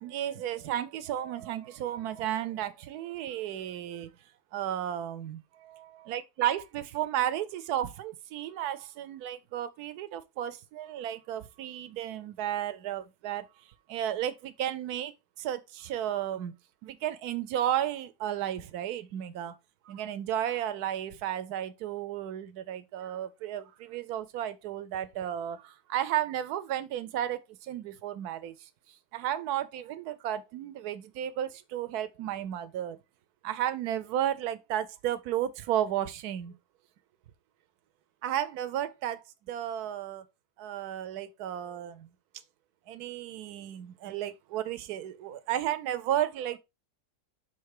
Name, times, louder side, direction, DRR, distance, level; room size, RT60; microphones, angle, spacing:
voice 1, 0.0-4.1 4.5-13.5 13.9-16.5 16.8-19.6 19.9-28.7 29.1-33.0 33.4-36.5 38.2-40.2 40.6-42.1 42.9-46.6, right 11 dB, 65° right, 1.1 m, -33 dB
5.8 x 3.6 x 4.8 m
omnidirectional pair, 2.0 m